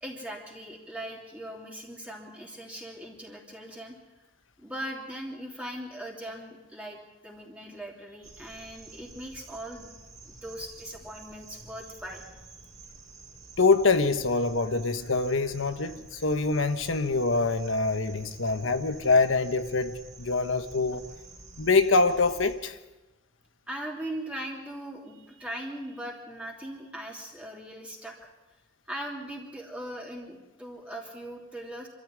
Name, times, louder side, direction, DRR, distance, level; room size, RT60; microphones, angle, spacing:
voice 1, 0.0-3.9 4.6-9.9 10.2-12.2 23.7-28.3 28.9-31.9, right 1 dB, 5° right, 3.0 m, -40 dB
sound 1, 8.2-22.6, right 3 dB, 20° right, 4.6 m, -49 dB
voice 2, 13.6-21.0 21.6-22.8, left 3 dB, 80° left, 1.2 m, -25 dB
25.5 x 14.0 x 9.5 m
head